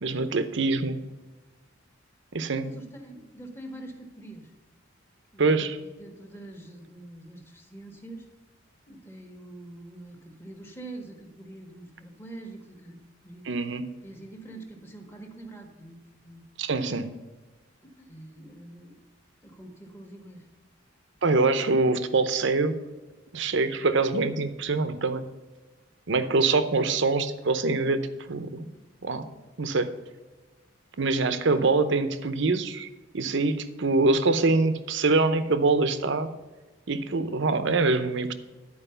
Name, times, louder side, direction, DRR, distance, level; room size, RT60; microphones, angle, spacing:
voice 1, 0.0-1.0 2.3-2.7 5.4-5.8 13.4-13.9 16.6-17.1 21.2-22.8 23.3-25.2 26.1-28.0 28.3-28.7 29.0-29.3 29.6-29.9 31.0-32.9 33.1-36.3 36.9-38.3, right 3 dB, 65° right, 11 dB, 0.7 m, -24 dB
voice 2, 2.6-4.5 5.3-8.3 8.9-13.5 14.0-16.4 17.8-19.0 19.4-20.5, right 2 dB, 10° left, 2 dB, 1.4 m, -45 dB
11.0 x 4.7 x 6.8 m, 1.2 s
head